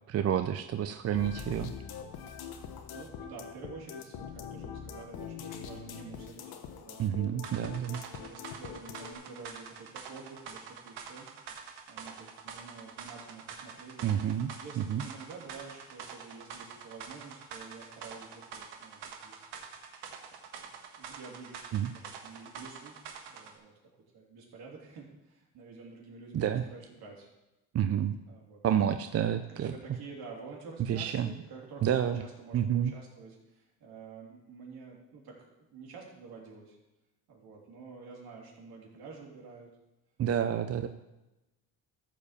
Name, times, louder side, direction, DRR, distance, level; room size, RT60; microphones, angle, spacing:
voice 1, 0.1-1.7 7.0-8.0 14.0-14.5 14.8-15.0 21.7-21.9 26.3-26.6 27.7-28.2 28.6-29.7 30.9-31.3 31.8-32.2 32.5-32.9 40.2-40.9, right 9 dB, 40° right, 9 dB, 0.6 m, -29 dB
sound 1, 1.1-9.1, left 7 dB, 65° left, 1.3 m, -43 dB
voice 2, 2.9-6.5 6.8-19.7 20.6-20.7 21.0-23.0 23.3-23.7 24.1-27.3 28.3-28.6 29.5-35.4 35.7-36.8 37.3-39.7, right 4 dB, 70° right, -2 dB, 3.5 m, -49 dB
sound 2, 7.4-23.6, right 6 dB, 85° right, 1.5 m, -46 dB
13.5 x 5.0 x 6.8 m, 1.0 s
cardioid pair, 100°, 39 cm